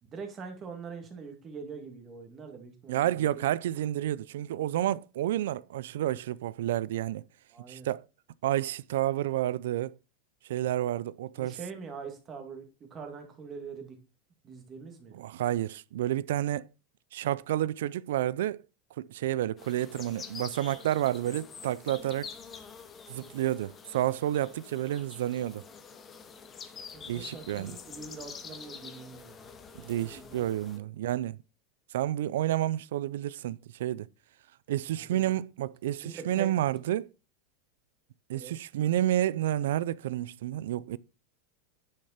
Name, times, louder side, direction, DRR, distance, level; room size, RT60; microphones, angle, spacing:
voice 1, 0.0-3.5 7.5-7.9 11.3-14.0 14.4-15.2 26.9-29.5 30.0-30.4 30.8-30.9 35.0-35.2 36.0-36.8 38.3-38.5, right 5 dB, 20° right, 2.1 m, -44 dB
voice 2, 2.9-7.2 7.7-8.0 8.4-9.9 10.5-11.6 15.1-16.7 17.1-18.6 19.0-22.3 23.1-25.6 27.1-27.8 29.7-31.4 31.9-34.1 34.7-37.1 38.3-41.0, right 13 dB, 80° right, 0.5 m, -30 dB
sound 1, 19.6-30.8, left 6 dB, 15° left, 1.0 m, -47 dB
10.0 x 6.6 x 4.3 m
supercardioid pair, 170°, 0 cm